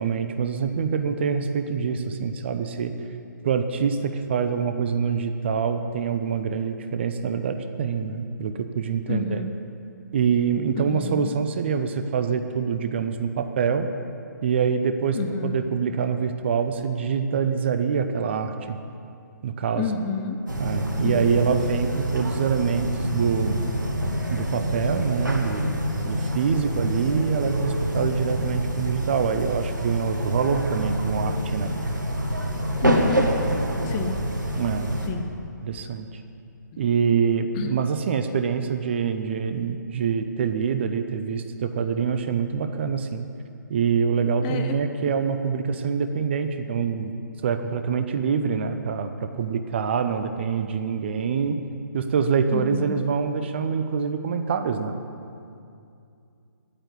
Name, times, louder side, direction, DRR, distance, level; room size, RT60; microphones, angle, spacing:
voice 1, 0.0-2.9 3.4-9.4 10.1-13.9 14.4-18.8 19.4-19.9 20.6-23.6 24.3-31.8 34.6-34.9 35.6-36.2 36.8-43.3 43.7-47.1 47.4-51.6 51.9-55.0, right 6 dB, 35° right, 8 dB, 0.8 m, -25 dB
voice 2, 9.1-9.5 10.7-11.4 15.1-15.6 19.7-20.4 21.0-21.4 32.8-33.3 33.8-34.1 35.1-35.2 36.7-36.8 37.5-37.7 44.4-45.1 52.5-53.0, left 5 dB, 20° left, 5 dB, 0.6 m, -29 dB
sound 1, 20.5-35.1, right 1 dB, 75° right, 2.1 m, -27 dB
10.5 x 8.9 x 9.7 m, 2.5 s
figure-of-eight pair, 140°, 10 cm